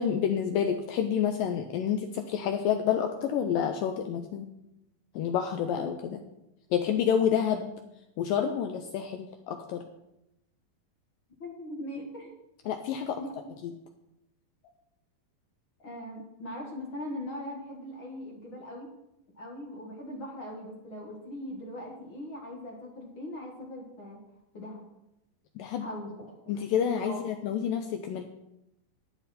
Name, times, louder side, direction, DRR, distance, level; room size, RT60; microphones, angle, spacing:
voice 1, 0.0-4.5 5.1-6.2 6.7-7.7 8.2-9.8 12.7-13.2 13.6-13.7 25.6-25.9 26.5-28.2, left 8 dB, 80° left, 6 dB, 2.1 m, -29 dB
voice 2, 11.4-12.3 13.2-13.3 15.8-18.9 19.4-24.2 24.5-24.9 25.8-26.3 27.0-27.3, left 1 dB, 45° left, -1 dB, 1.7 m, -40 dB
12.0 x 10.0 x 4.2 m, 0.88 s
omnidirectional pair, 4.5 m